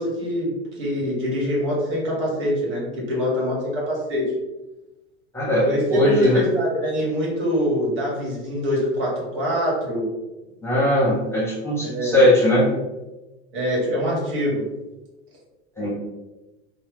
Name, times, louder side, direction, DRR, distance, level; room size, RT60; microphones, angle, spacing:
voice 1, 0.0-4.3 5.6-10.1 11.8-12.2 13.5-14.6, equal, 55° right, -4 dB, 1.4 m, -24 dB
voice 2, 5.3-6.4 10.6-12.7 15.8-15.9, left 1 dB, 5° left, -6 dB, 1.1 m, -19 dB
3.2 x 2.2 x 3.1 m, 1.1 s
figure-of-eight pair, 90°, 33 cm